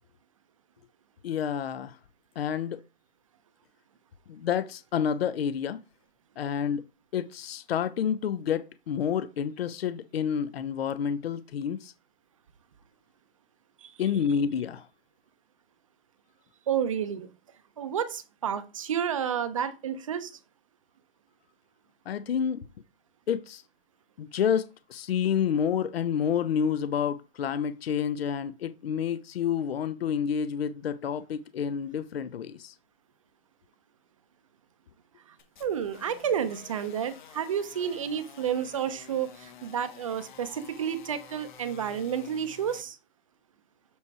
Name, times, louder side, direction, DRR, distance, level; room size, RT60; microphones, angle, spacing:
voice 1, 1.2-2.0 2.4-2.8 4.3-5.8 6.4-6.8 7.1-11.9 14.0-14.9 22.1-22.6 23.3-23.6 24.2-32.7, left 8 dB, 65° left, 0.7 m, -29 dB
voice 2, 16.7-17.3 17.8-20.3 35.6-43.0, right 8 dB, 30° right, 0.6 m, -30 dB
sound 1, 35.4-42.8, left 7 dB, 45° left, 1.3 m, -51 dB
8.3 x 3.1 x 4.7 m
hypercardioid pair, 170°, 32 cm